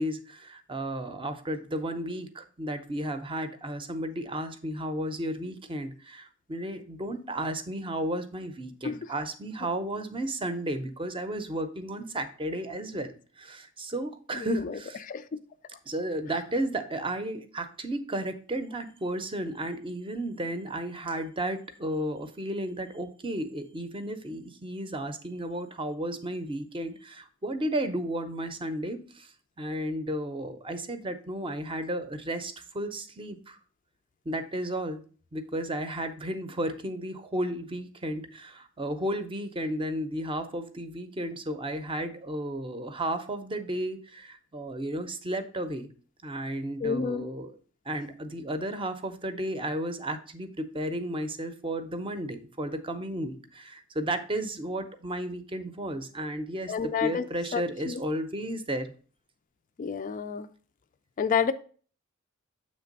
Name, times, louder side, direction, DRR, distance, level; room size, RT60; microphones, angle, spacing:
voice 1, 0.0-15.0 15.9-29.3 29.6-33.6 34.3-35.0 35.3-45.9 46.2-47.6 47.9-58.9, right 1 dB, 25° right, 0.6 m, -33 dB
voice 2, 14.3-14.7 15.1-15.3 46.8-47.2 56.7-57.3 57.5-58.0 59.8-60.5 61.2-61.5, left 6 dB, 40° left, 0.3 m, -29 dB
7.4 x 3.3 x 5.2 m
head